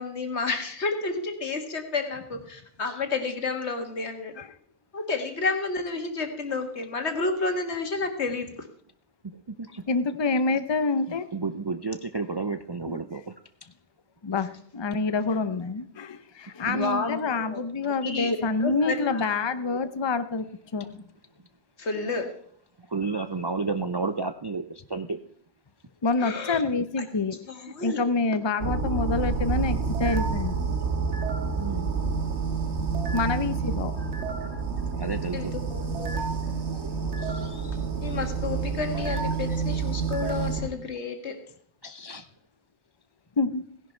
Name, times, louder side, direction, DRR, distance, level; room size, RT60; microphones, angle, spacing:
voice 1, 0.0-4.4 4.9-8.5 16.7-17.6 18.0-19.2 21.8-22.3 26.2-26.6 27.0-27.1 27.5-28.0 35.3-36.3 38.0-41.4, left 3 dB, 75° left, 6 dB, 1.9 m, -30 dB
voice 2, 9.2-9.9 11.1-13.3 16.6-16.9 22.8-25.2 27.8-28.2 28.7-28.8 29.4-29.5 31.5-31.9 34.0-35.5 36.4-37.8 38.9-39.0 39.5-39.6 40.4-40.5 41.8-42.3, right 4 dB, 40° right, 9 dB, 0.4 m, -33 dB
voice 3, 9.9-11.3 12.9-13.0 14.2-20.5 20.7-21.0 26.0-27.4 27.8-30.6 33.1-33.9 43.4-43.6, left 4 dB, 25° left, 11 dB, 0.7 m, -27 dB
sound 1, 28.6-40.7, right 5 dB, 85° right, 1.8 m, -28 dB
17.0 x 11.0 x 4.5 m, 0.64 s
omnidirectional pair, 1.2 m